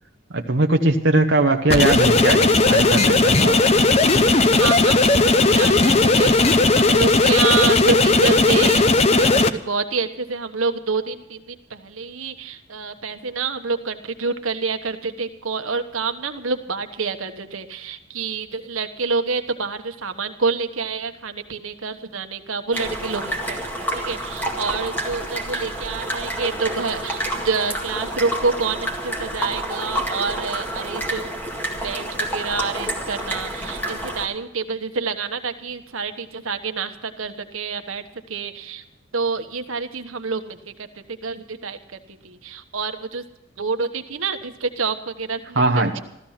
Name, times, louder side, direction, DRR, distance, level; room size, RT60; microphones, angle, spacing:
voice 1, 0.3-3.7 45.6-46.0, right 2 dB, 60° right, 3 dB, 0.9 m, -20 dB
sound 1, 1.7-9.5, left 3 dB, 30° left, 0.7 m, -16 dB
voice 2, 4.4-31.3 31.7-38.8 39.1-43.2 43.6-46.0, right 4 dB, 85° right, 8 dB, 1.3 m, -27 dB
sound 2, 22.7-34.3, right 1 dB, 10° left, 2.0 m, -29 dB
15.0 x 13.5 x 5.8 m, 0.87 s
head